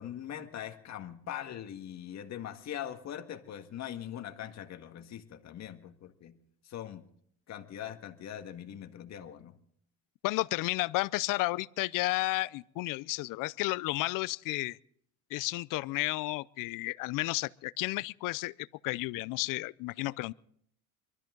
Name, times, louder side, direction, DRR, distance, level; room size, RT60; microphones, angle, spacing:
voice 1, 0.0-6.4 6.6-7.1 7.5-9.5, left 10 dB, 50° left, 1.8 m, -42 dB
voice 2, 10.2-14.8 15.3-20.3, left 21 dB, 65° left, 0.6 m, -32 dB
23.5 x 13.5 x 3.9 m
supercardioid pair, 110°, 35 cm